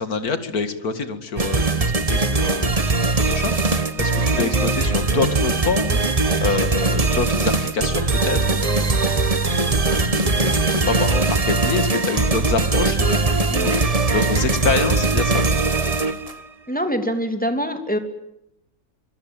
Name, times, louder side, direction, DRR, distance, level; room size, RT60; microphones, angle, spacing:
voice 1, 0.0-15.4, left 5 dB, 55° left, 10 dB, 2.5 m, -27 dB
sound 1, 1.4-16.4, right 3 dB, 25° right, 1.2 m, -20 dB
voice 2, 16.7-18.0, equal, 5° left, 6 dB, 2.9 m, -24 dB
25.0 x 23.5 x 9.0 m, 0.83 s
omnidirectional pair, 1.9 m